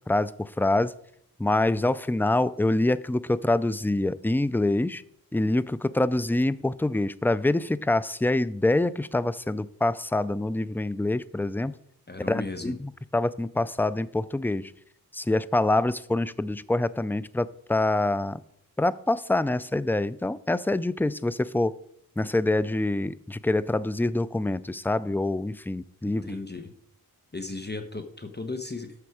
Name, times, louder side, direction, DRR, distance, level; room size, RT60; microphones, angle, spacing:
voice 1, 0.1-0.9 1.4-5.0 5.3-11.8 12.3-14.7 15.1-18.4 18.8-21.7 22.2-26.4, left 2 dB, 5° left, 16 dB, 0.4 m, -25 dB
voice 2, 12.1-12.8 26.0-26.7 27.3-28.9, left 3 dB, 30° left, 6 dB, 1.1 m, -36 dB
11.5 x 7.1 x 4.9 m, 0.71 s
wide cardioid pair, 60°, 37 cm